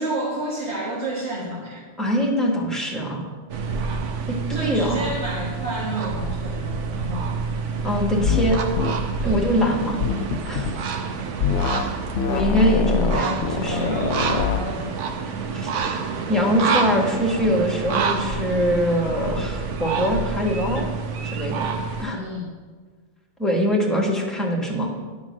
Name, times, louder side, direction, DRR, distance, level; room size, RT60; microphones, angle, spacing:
voice 1, 0.0-1.8 4.5-7.4 9.2-9.7 10.5-10.7 11.8-11.9 13.1-15.1 22.1-22.6, right 1 dB, 65° right, -6 dB, 1.8 m, -31 dB
voice 2, 2.0-3.2 4.3-5.0 7.8-8.6 9.2-10.0 10.5-10.7 12.3-14.0 15.5-15.7 16.3-20.9 21.2-21.7 22.0-22.2 23.4-24.9, equal, ahead, -2 dB, 1.4 m, -23 dB
sound 1, 3.5-22.0, right 5 dB, 85° right, 1.1 m, -28 dB
sound 2, 8.3-8.5 8.8-9.0 10.0-10.7 11.4-11.9 12.2-14.6, left 6 dB, 75° left, 0.9 m, -24 dB
11.0 x 3.9 x 6.2 m, 1.4 s
omnidirectional pair, 1.2 m